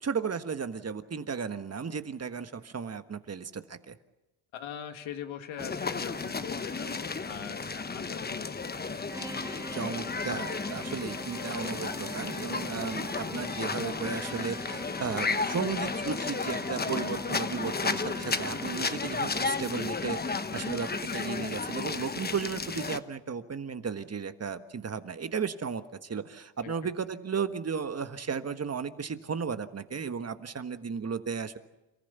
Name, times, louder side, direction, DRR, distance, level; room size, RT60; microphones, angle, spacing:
voice 1, 0.0-3.9 9.7-20.2 20.5-31.6, right 6 dB, 30° right, 10 dB, 1.4 m, -35 dB
voice 2, 4.5-9.1 26.6-26.9, left 9 dB, 75° left, 7 dB, 1.9 m, -42 dB
sound 1, 5.6-23.0, left 4 dB, 20° left, 1.1 m, -33 dB
sound 2, 9.1-19.2, right 1 dB, 5° right, 1.0 m, -43 dB
29.5 x 15.0 x 8.2 m, 1.0 s
cardioid pair, 105°, 47 cm